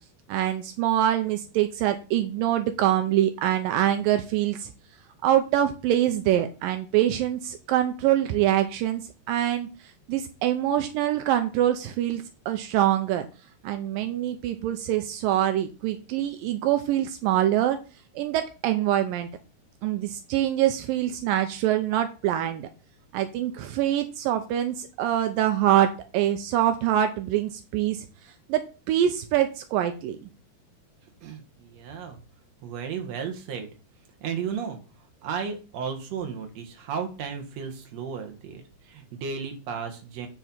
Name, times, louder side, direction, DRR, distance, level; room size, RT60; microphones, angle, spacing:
voice 1, 0.3-4.7 5.2-9.0 9.3-9.7 10.1-13.3 13.6-17.8 18.2-19.3 19.8-22.7 23.1-28.1 28.5-28.6 28.9-30.3, right 12 dB, 85° right, 8 dB, 2.0 m, -24 dB
voice 2, 31.2-32.2 32.6-33.7 34.2-34.8 35.2-40.3, right 6 dB, 55° right, 4 dB, 2.1 m, -34 dB
9.3 x 4.6 x 5.6 m, 0.34 s
omnidirectional pair, 4.7 m